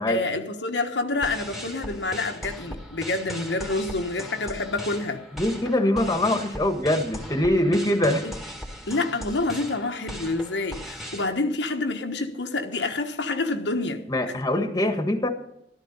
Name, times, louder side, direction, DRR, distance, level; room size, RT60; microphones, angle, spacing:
voice 1, 0.1-5.2 8.2-8.3 8.9-14.0, left 2 dB, 85° left, 1.3 m, -28 dB
sound 1, 1.1-11.3, equal, ahead, 2.1 m, -38 dB
voice 2, 5.3-8.3 14.1-15.3, left 1 dB, 20° left, 1.6 m, -23 dB
13.5 x 13.0 x 5.5 m
head